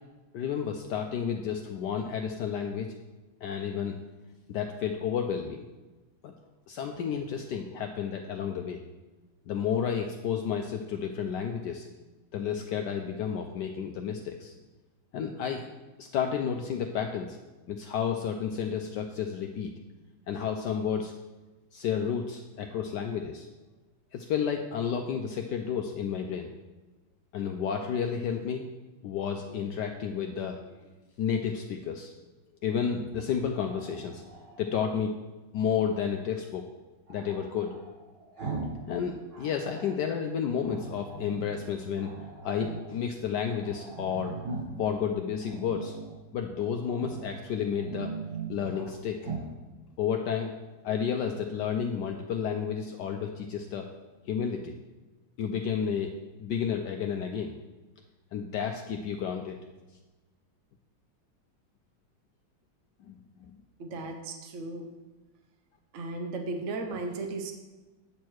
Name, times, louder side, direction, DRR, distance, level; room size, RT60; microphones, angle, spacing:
voice 1, 0.3-2.9 3.4-4.0 4.5-5.7 6.2-6.3 6.7-8.8 9.5-11.9 12.3-14.5 15.1-15.7 16.0-17.4 17.7-19.7 20.3-21.1 21.7-23.5 24.1-26.5 27.3-28.7 29.0-30.8 31.2-32.1 32.6-34.2 34.6-35.1 35.5-36.6 37.1-37.7 38.9-42.1 42.4-44.3 44.8-46.0 46.3-48.1 48.5-49.2 50.0-50.5 50.8-53.9 54.3-54.7 55.4-56.1 56.4-57.6 58.3-59.6 63.1-63.5, left 7 dB, 75° left, 4 dB, 1.0 m, -31 dB
Growling, 32.7-34.7 37.1-38.8 39.1-40.0 40.6-41.5 42.0-43.0 43.3-43.4 43.6-44.9 45.4-46.2 46.9-47.3 47.7-48.9 49.2-49.5, right 4 dB, 90° right, 4.3 m, -40 dB
voice 2, 63.8-64.9 65.9-67.5, right 3 dB, 60° right, 4 dB, 0.8 m, -35 dB
9.3 x 6.3 x 4.5 m, 1.2 s
omnidirectional pair, 2.2 m